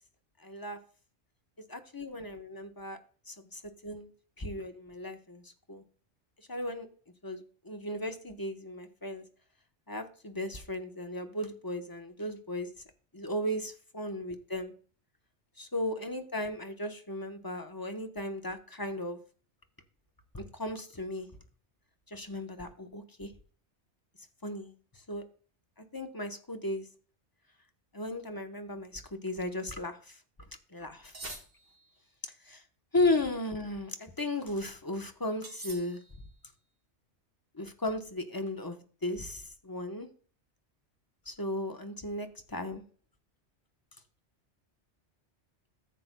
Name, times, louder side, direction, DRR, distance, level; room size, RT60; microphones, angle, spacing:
voice 1, 0.4-0.8 1.6-3.0 3.3-4.1 4.4-5.8 6.4-6.9 7.2-9.2 9.9-12.8 13.1-14.7 15.6-19.2 20.3-21.3 22.1-23.3 24.4-25.2 25.8-26.9 27.9-30.2 30.7-31.2 32.2-32.6 32.9-36.0 37.5-40.1 41.3-42.8, left 1 dB, 20° left, 6 dB, 0.9 m, -36 dB
sound 1, 31.1-32.0 35.4-36.4, right 2 dB, 55° right, 2.0 m, -45 dB
14.5 x 7.6 x 2.2 m, 0.41 s
omnidirectional pair, 1.2 m